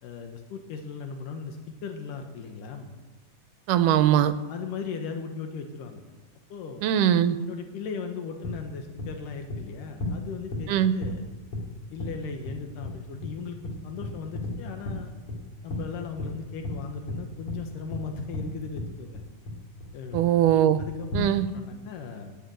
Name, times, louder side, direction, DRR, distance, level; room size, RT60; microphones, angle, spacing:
voice 1, 0.0-2.9 4.5-6.0 6.5-6.8 7.4-11.2 11.9-15.1 15.6-19.2 19.9-20.2 20.8-22.4, left 5 dB, 85° left, 5 dB, 2.7 m, -37 dB
voice 2, 3.7-4.3 6.8-7.4 10.7-11.0 20.1-20.8 21.1-21.5, right 11 dB, 85° right, 12 dB, 2.2 m, -21 dB
sound 1, 8.4-8.5 9.0-9.1 9.5-9.6 10.0-10.1 10.5-10.6 11.0-11.1 11.5-11.6 12.0-12.1 12.4-12.5 12.8-12.9 13.2-13.3 13.6-13.7 14.0-14.5 14.8-15.0 15.3-15.4 15.7-15.8 16.2-16.3 16.6-16.8 17.1-17.2 17.5-17.6 17.9-18.0 18.3-18.4 18.8-18.9 19.1-19.5 19.8-19.9 20.1-20.5 20.8-21.3, left 2 dB, 45° left, 3.6 m, -32 dB
10.5 x 9.3 x 9.1 m, 1.2 s
omnidirectional pair, 3.7 m